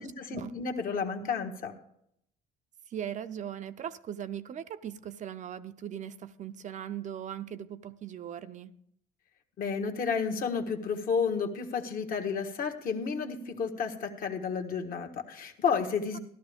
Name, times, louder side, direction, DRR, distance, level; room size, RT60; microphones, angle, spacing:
voice 1, 0.0-1.8 9.6-16.2, left 6 dB, 55° left, 5 dB, 1.4 m, -31 dB
voice 2, 2.9-8.7 16.1-16.2, right 9 dB, 45° right, 11 dB, 0.5 m, -39 dB
14.5 x 12.0 x 3.5 m, 0.72 s
cardioid pair, 110°, 17 cm